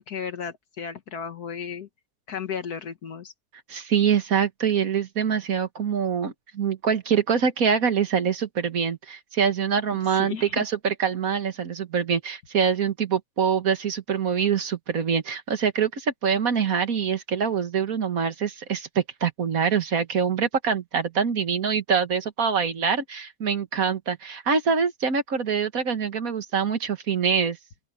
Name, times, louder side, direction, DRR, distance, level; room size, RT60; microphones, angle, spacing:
voice 1, 0.0-1.9 2.3-3.3 9.9-10.6, left 7 dB, 75° left, 1.9 m, -34 dB
voice 2, 3.7-27.6, right 7 dB, 65° right, 2.0 m, -25 dB
open air
omnidirectional pair, 1.6 m